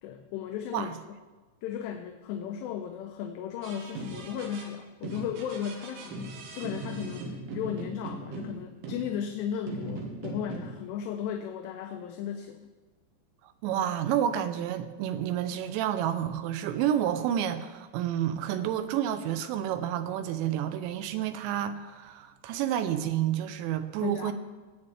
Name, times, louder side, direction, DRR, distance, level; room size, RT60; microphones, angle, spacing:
voice 1, 0.0-0.9 1.6-6.2 6.5-12.7 24.0-24.3, left 8 dB, 80° left, 5 dB, 2.7 m, -35 dB
sound 1, 3.6-4.7 5.0-9.4 9.7-10.9, right 2 dB, 70° right, 3.2 m, -39 dB
voice 2, 13.6-24.3, right 10 dB, 90° right, 10 dB, 2.9 m, -29 dB
19.0 x 8.4 x 3.3 m, 1.3 s
omnidirectional pair, 5.1 m